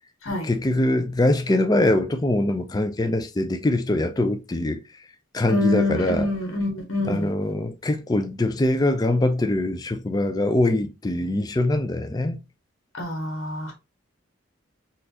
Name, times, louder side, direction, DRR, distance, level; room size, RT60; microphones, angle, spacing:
voice 1, 0.4-4.8 5.3-6.3 7.0-12.4, left 1 dB, 20° left, 0.4 m, -23 dB
voice 2, 5.5-7.3 12.9-13.7, left 2 dB, 90° left, 1.2 m, -26 dB
4.1 x 2.5 x 2.7 m
head